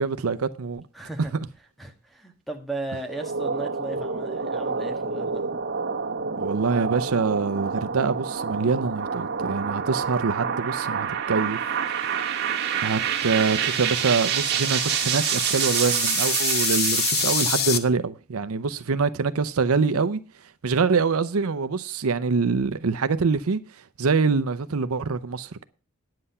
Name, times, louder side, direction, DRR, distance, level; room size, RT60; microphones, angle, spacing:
voice 1, 0.0-0.8 6.4-11.6 11.9-12.3 12.8-20.2 20.6-23.6 24.0-25.6, right 4 dB, 90° right, 0.6 m, -25 dB
voice 2, 0.9-1.3 1.8-5.4, right 2 dB, ahead, 1.5 m, -36 dB
sound 1, 3.0-17.6, right 7 dB, 55° right, 1.6 m, -27 dB
sound 2, 12.7-17.8, left 8 dB, 50° left, 0.9 m, -29 dB
9.9 x 7.8 x 5.5 m
head